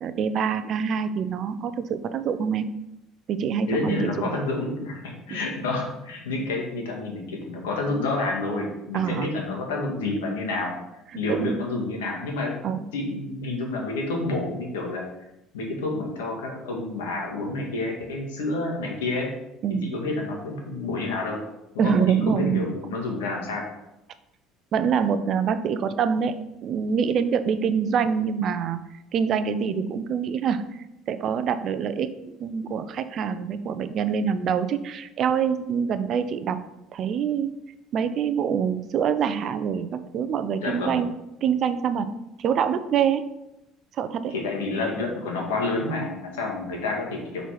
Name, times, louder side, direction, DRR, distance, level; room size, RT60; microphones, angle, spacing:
voice 1, 0.0-2.6 3.3-4.3 5.3-5.4 8.9-9.3 11.3-11.5 12.6-12.8 19.6-19.9 21.8-22.7 24.7-28.8 29.1-32.1 32.4-36.6 36.9-37.5 37.9-41.1 41.4-42.1 42.4-43.3 44.0-44.3, right 7 dB, 55° right, 11 dB, 0.5 m, -25 dB
voice 2, 3.7-10.7 11.1-12.5 12.9-15.0 15.5-19.3 19.8-21.4 21.7-21.9 22.3-23.6 40.6-41.0 44.3-47.4, left 2 dB, 90° left, 0 dB, 1.6 m, -29 dB
4.6 x 4.1 x 5.7 m, 0.89 s
hypercardioid pair, 75°, 0 cm